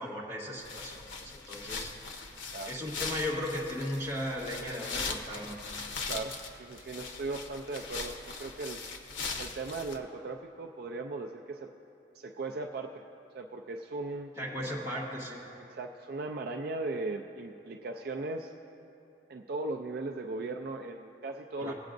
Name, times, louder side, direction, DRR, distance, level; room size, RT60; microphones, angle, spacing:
voice 1, 0.0-1.9 2.7-5.6 14.4-15.4 21.6-21.7, left 1 dB, 15° right, -6 dB, 1.7 m, -36 dB
sound 1, 0.6-10.0, left 4 dB, 90° left, 0.8 m, -40 dB
voice 2, 6.1-8.8 9.4-11.7 12.1-13.0 13.3-14.3 15.6-18.5 19.3-21.7, right 3 dB, 55° right, 3 dB, 0.4 m, -38 dB
23.0 x 8.2 x 2.6 m, 2.8 s
head